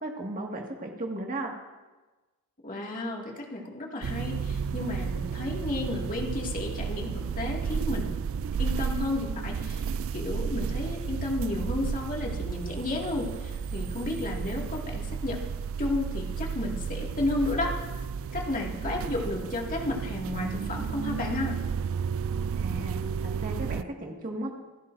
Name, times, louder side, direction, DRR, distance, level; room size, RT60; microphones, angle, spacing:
voice 1, 0.0-1.5 22.6-24.5, right 1 dB, 40° right, 0 dB, 1.9 m, -35 dB
voice 2, 2.6-8.1 8.6-9.8 10.1-15.4 15.8-17.7 18.3-21.6, left 2 dB, 40° left, -1 dB, 2.2 m, -32 dB
sound 1, 4.0-23.8, right 6 dB, 65° right, 0.3 m, -32 dB
27.0 x 11.0 x 2.6 m, 1.2 s
head